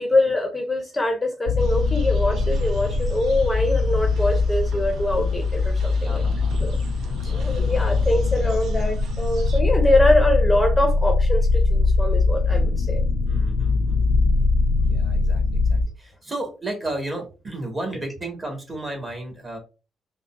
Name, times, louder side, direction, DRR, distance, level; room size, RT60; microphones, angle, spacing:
voice 1, 0.0-6.2 6.6-6.8 7.3-13.0, left 1 dB, 15° left, 4 dB, 0.6 m, -23 dB
sound 1, 1.5-15.8, left 3 dB, 80° left, 0.3 m, -22 dB
sound 2, 1.6-9.6, equal, 75° right, 0.4 m, -32 dB
voice 2, 6.0-6.6 7.2-7.7 13.2-19.6, right 2 dB, 25° right, 2 dB, 1.2 m, -34 dB
3.7 x 2.1 x 2.3 m, 0.31 s
cardioid pair, 90°, 0 cm